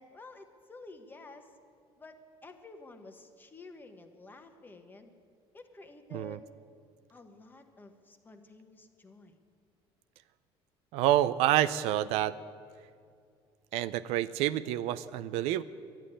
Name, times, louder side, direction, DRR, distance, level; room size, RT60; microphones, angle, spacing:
voice 1, 0.0-1.5 2.0-5.1 5.5-6.5 7.1-9.4, left 3 dB, 20° left, 6 dB, 1.2 m, -51 dB
voice 2, 10.9-12.4 13.7-15.6, right 13 dB, 85° right, 14 dB, 0.5 m, -28 dB
11.5 x 10.5 x 9.9 m, 2.2 s
cardioid pair, 130°, 10 cm